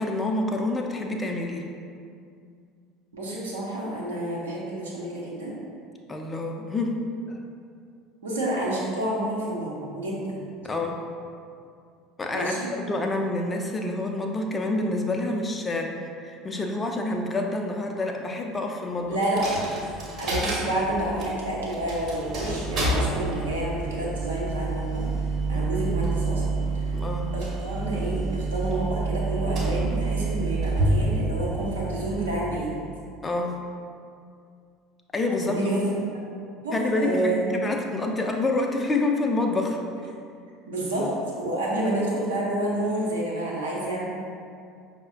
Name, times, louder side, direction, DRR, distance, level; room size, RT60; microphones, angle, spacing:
voice 1, 0.0-1.7 6.1-7.0 7.3-7.4 10.6-11.0 12.2-15.9 16.2-19.2 25.5-25.7 26.9-27.3 33.2-33.5 35.1-35.8 36.7-39.8, left 2 dB, 20° left, 2 dB, 0.4 m, -27 dB
voice 2, 3.1-5.5 8.2-10.4 12.3-12.7 19.1-19.8 20.2-25.0 25.5-27.0 27.3-32.7 35.5-36.0 36.6-37.5 40.7-41.1 41.4-44.0, right 1 dB, 80° right, -5 dB, 0.7 m, -29 dB
Coin (dropping), 19.2-33.0, right 3 dB, 45° right, 0.8 m, -28 dB
5.3 x 2.0 x 2.5 m, 2.3 s
figure-of-eight pair, 65°, 0 cm